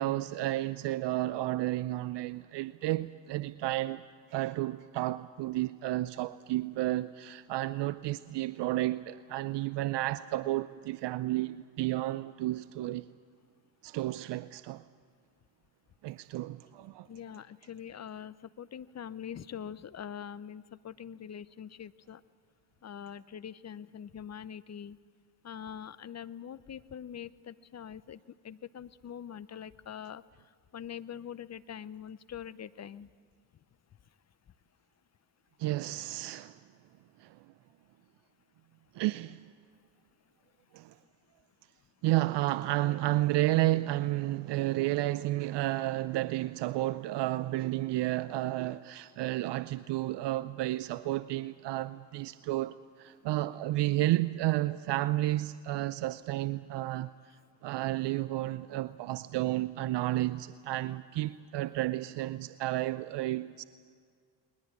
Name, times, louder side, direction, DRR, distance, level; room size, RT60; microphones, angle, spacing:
voice 1, 0.0-4.0 4.3-13.1 13.8-14.8 16.0-17.1 35.6-36.6 37.2-37.4 38.9-39.4 40.7-40.9 42.0-57.1 57.6-63.6, right 16 dB, 60° right, 0.7 m, -31 dB
voice 2, 17.1-22.2 22.8-25.0 25.4-33.1, left 8 dB, 35° left, 0.8 m, -44 dB
21.0 x 20.5 x 8.5 m
hypercardioid pair, 55°, 49 cm